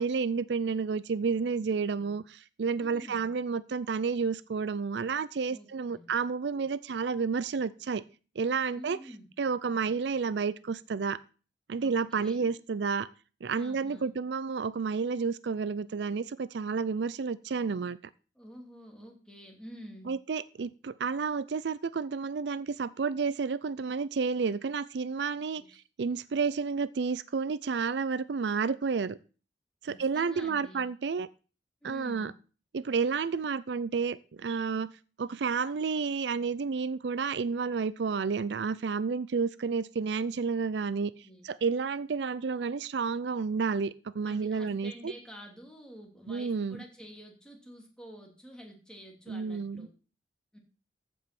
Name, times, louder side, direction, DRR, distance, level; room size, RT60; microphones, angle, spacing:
voice 1, 0.0-8.0 8.4-9.0 9.4-11.2 11.7-13.1 13.4-18.0 20.1-29.2 29.8-31.3 31.8-32.3 32.7-34.9 35.2-41.1 41.4-45.1 46.3-46.8 49.3-49.9, right 5 dB, 75° right, 0.5 m, -31 dB
voice 2, 2.8-3.3 5.5-6.1 8.7-9.3 11.8-12.5 13.5-14.1 18.4-20.1 25.6-25.7 29.8-30.8 31.8-32.3 40.9-41.4 44.2-49.9 50.5-50.6, equal, 5° left, 2.7 m, -49 dB
14.5 x 5.4 x 5.9 m
head